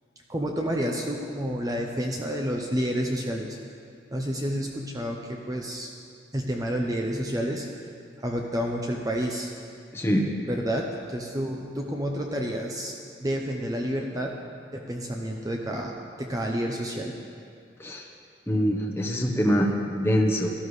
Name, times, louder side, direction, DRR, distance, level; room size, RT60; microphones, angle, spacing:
voice 1, 0.3-3.6 4.1-5.9 6.3-7.7 8.2-9.5 10.5-12.9 13.2-14.4 14.7-17.1, equal, 20° right, 1 dB, 0.7 m, -29 dB
voice 2, 9.9-10.3 17.8-18.1 18.5-20.5, equal, 10° left, 0 dB, 0.9 m, -24 dB
17.0 x 12.5 x 3.2 m, 2.4 s
head